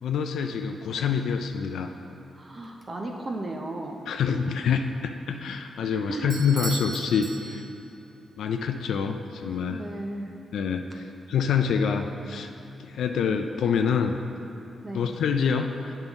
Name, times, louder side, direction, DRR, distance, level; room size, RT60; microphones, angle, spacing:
voice 1, 0.0-1.9 4.1-7.7 8.4-9.8 10.5-12.5 12.8-14.2 14.9-16.0, left 6 dB, 85° left, 5 dB, 0.3 m, -26 dB
voice 2, 2.3-4.0 6.1-6.4 9.7-10.3 14.8-15.2, right 2 dB, 30° right, 1 dB, 0.6 m, -35 dB
Bell / Doorbell, 6.3-8.0, right 3 dB, 60° right, 0.9 m, -37 dB
8.8 x 5.4 x 3.5 m, 3.0 s
cardioid pair, 115°, 0 cm